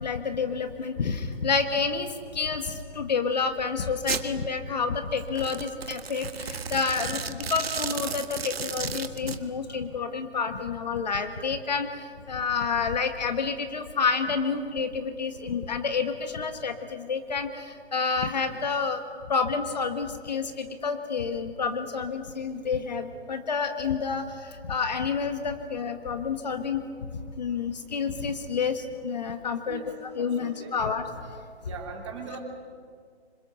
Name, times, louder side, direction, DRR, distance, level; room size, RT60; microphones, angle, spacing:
voice 1, 0.0-19.0 19.3-26.8 27.4-31.0, left 5 dB, 40° left, 7 dB, 1.5 m, -29 dB
Domestic sounds home sounds, 4.1-4.3 5.3-9.4, right 6 dB, 60° right, 1.7 m, -33 dB
voice 2, 9.4-9.8 29.6-30.8 31.6-32.4, right 5 dB, 25° right, 1 dB, 3.4 m, -41 dB
26.5 x 26.0 x 6.8 m, 2.1 s
hypercardioid pair, 170°, 34 cm